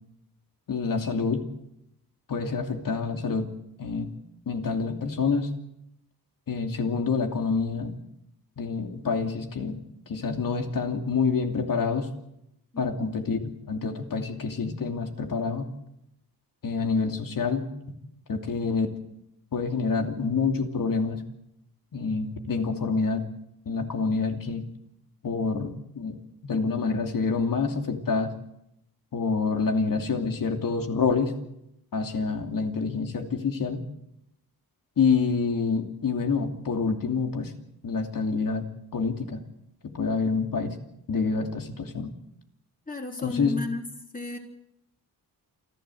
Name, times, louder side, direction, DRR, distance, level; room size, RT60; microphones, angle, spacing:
voice 1, 0.7-1.4 2.3-3.5 3.8-4.1 4.5-5.5 6.5-8.0 8.6-9.8 10.1-12.1 12.8-15.7 16.6-17.7 18.3-18.9 19.5-21.2 21.9-23.3 23.7-24.7 25.2-26.2 26.5-28.3 29.1-31.3 31.9-33.8 35.0-37.5 37.8-38.7 38.9-39.4 39.9-40.7 41.1-42.1 43.2-43.5, left 4 dB, 60° left, 4 dB, 2.8 m, -27 dB
voice 2, 12.7-13.1 42.9-43.8 44.1-44.4, left 3 dB, 20° left, 1 dB, 3.3 m, -33 dB
28.0 x 12.0 x 7.8 m, 0.83 s
cardioid pair, 90°, 38 cm